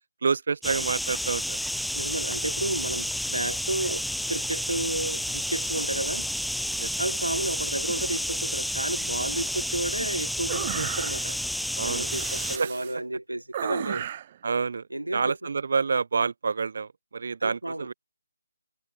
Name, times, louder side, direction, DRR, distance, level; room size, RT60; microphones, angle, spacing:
voice 1, 0.2-1.6 6.8-6.9 11.8-12.1 12.6-12.7 14.4-14.8 15.1-17.9, right 5 dB, 50° right, 1.5 m, -28 dB
sound 1, 0.6-12.6, left 1 dB, ahead, 3.3 m, -30 dB
voice 2, 1.9-6.3 7.0-11.4 11.8-14.1 14.9-15.4 17.4-17.9, right 1 dB, 85° right, 6.7 m, -32 dB
sound 2, 10.5-11.4 12.0-12.9 13.5-14.4, right 11 dB, 30° right, 3.7 m, -34 dB
figure-of-eight pair, 150°, 0 cm